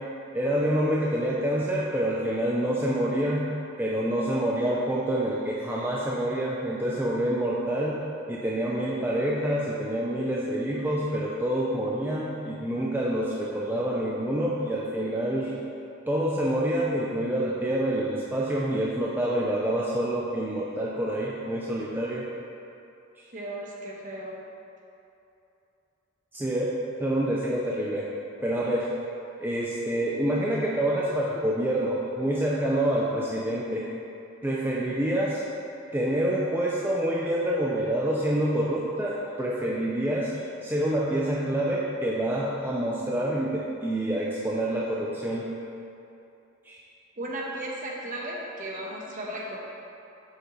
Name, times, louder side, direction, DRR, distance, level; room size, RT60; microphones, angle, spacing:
voice 1, 0.3-3.5 3.8-8.0 8.3-15.5 16.1-22.2 26.3-26.7 27.0-28.0 28.4-28.9 29.4-33.9 34.4-35.4 35.9-40.3 40.6-45.5 46.7-46.8, right 1 dB, 10° right, -5 dB, 0.5 m, -27 dB
voice 2, 23.3-24.3 47.2-49.6, right 1 dB, 40° right, -3 dB, 1.1 m, -35 dB
7.7 x 6.4 x 3.1 m, 2.8 s
head